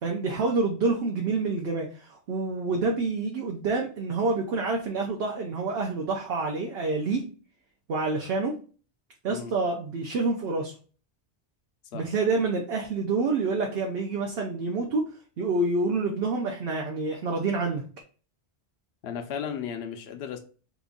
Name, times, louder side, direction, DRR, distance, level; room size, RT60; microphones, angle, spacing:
voice 1, 0.0-7.2 7.9-8.6 9.2-10.7 11.9-15.0 15.4-17.8, right 3 dB, 70° right, 1 dB, 0.8 m, -27 dB
voice 2, 19.0-20.4, left 7 dB, 75° left, 6 dB, 0.8 m, -34 dB
2.9 x 2.5 x 3.6 m, 0.39 s
omnidirectional pair, 1.1 m